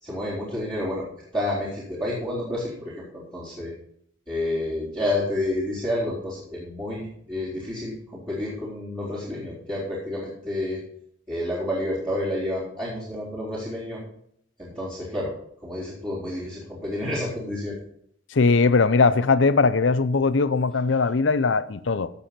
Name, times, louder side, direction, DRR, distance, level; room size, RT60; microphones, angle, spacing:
voice 1, 0.0-1.0 1.3-3.7 4.3-10.8 11.3-14.0 14.6-15.3 15.6-17.8, left 1 dB, 25° right, 4.0 m, -29 dB
voice 2, 18.3-22.1, left 4 dB, 70° left, 0.6 m, -20 dB
16.5 x 7.0 x 4.4 m
head